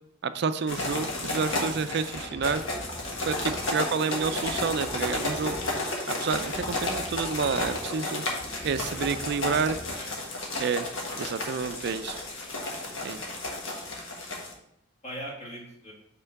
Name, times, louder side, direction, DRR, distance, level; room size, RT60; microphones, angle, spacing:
voice 1, 0.2-2.6 3.3-5.6 6.1-8.2 8.6-9.8 10.6-10.9 11.2-12.2 13.0-13.2, right 5 dB, 55° right, 11 dB, 0.4 m, -29 dB
sound 1, 0.7-14.5, left 2 dB, 70° left, 1.5 m, -32 dB
sound 2, 2.1-3.9 4.2-6.0 6.3-8.0 8.4-10.1, equal, 10° left, 0.6 m, -43 dB
voice 2, 13.1-14.5 15.0-15.9, equal, 35° left, -3 dB, 2.0 m, -44 dB
5.6 x 3.7 x 5.8 m, 0.75 s
head